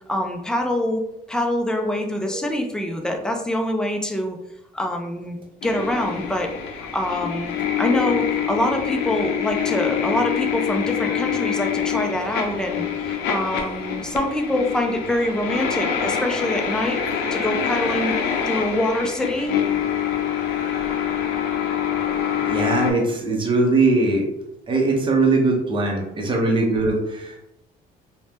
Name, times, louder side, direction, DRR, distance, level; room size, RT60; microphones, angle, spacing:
voice 1, 0.1-1.0 1.3-4.4 4.7-5.4 5.6-6.5 6.8-7.5 7.8-17.0 17.3-18.1 18.5-19.5, left 1 dB, 5° left, 3 dB, 0.4 m, -25 dB
sound 1, 5.6-22.9, left 8 dB, 85° left, 0.5 m, -25 dB
voice 2, 22.5-24.2 24.7-27.5, right 3 dB, 30° right, 0 dB, 0.7 m, -20 dB
2.6 x 2.1 x 3.3 m, 0.86 s
cardioid pair, 110°, 17 cm